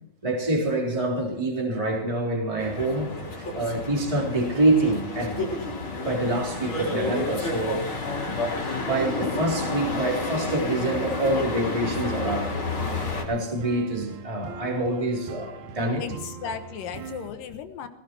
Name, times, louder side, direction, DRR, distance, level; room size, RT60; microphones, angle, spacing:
voice 1, 0.2-5.5 6.0-7.8 8.8-12.6 13.3-16.1, right 1 dB, 10° right, -1 dB, 3.5 m, -26 dB
sound 1, 2.6-13.2, left 3 dB, 35° left, 4.3 m, -30 dB
sound 2, 10.8-17.3, right 4 dB, 65° right, 2.5 m, -41 dB
voice 2, 16.0-17.9, left 7 dB, 80° left, 8 dB, 3.0 m, -35 dB
18.0 x 17.5 x 4.6 m, 0.71 s
omnidirectional pair, 3.9 m